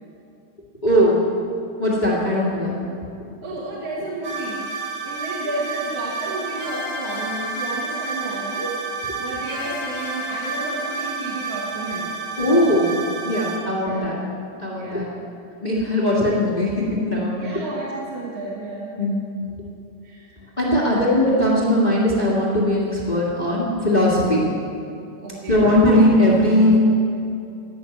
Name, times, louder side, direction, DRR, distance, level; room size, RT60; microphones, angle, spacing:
voice 1, 0.8-1.2 1.8-2.8 12.4-14.2 14.6-15.1 15.6-17.6 19.0-19.2 20.6-24.4 25.5-26.8, left 1 dB, 20° left, -5 dB, 1.2 m, -19 dB
voice 2, 3.4-4.6 5.0-12.2 13.8-14.1 14.8-15.3 17.4-19.0 20.0-20.3 20.7-21.1 25.2-25.7, right 2 dB, 55° right, -6 dB, 2.4 m, -32 dB
sound 1, 4.2-13.6, right 3 dB, 85° right, 3.6 m, -30 dB
14.0 x 6.3 x 9.3 m, 2.6 s
omnidirectional pair, 3.7 m